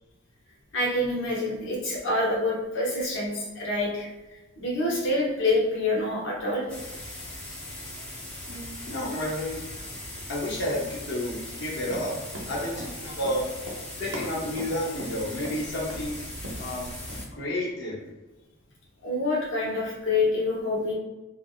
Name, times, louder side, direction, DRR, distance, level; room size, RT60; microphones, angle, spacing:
voice 1, 0.7-4.1 4.6-6.7 19.0-20.9, left 2 dB, 80° left, -4 dB, 0.9 m, -26 dB
sound 1, 6.7-17.2, left 1 dB, 5° left, 0.7 m, -39 dB
voice 2, 8.5-9.6 10.3-12.1 12.5-13.5 14.0-16.2 16.6-16.9 17.3-18.1, left 1 dB, 60° left, -5 dB, 0.6 m, -31 dB
Run, 11.8-15.6 15.9-16.1 16.3-16.7 17.1-17.2, right 1 dB, 75° right, 0.7 m, -39 dB
3.2 x 2.4 x 2.3 m, 1.1 s
head